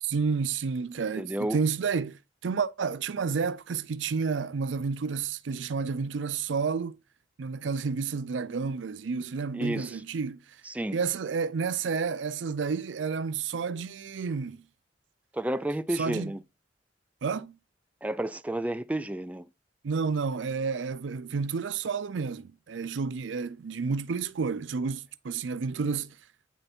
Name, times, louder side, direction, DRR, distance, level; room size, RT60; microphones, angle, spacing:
voice 1, 0.0-7.0 7.4-10.4 10.9-14.6 15.9-16.3 17.2-17.5 19.8-26.1, right 5 dB, 85° right, 0.5 m, -30 dB
voice 2, 1.2-1.6 9.5-10.0 10.6-11.0 15.3-16.4 18.0-19.5, right 1 dB, 10° right, 0.4 m, -31 dB
9.2 x 3.3 x 4.3 m
head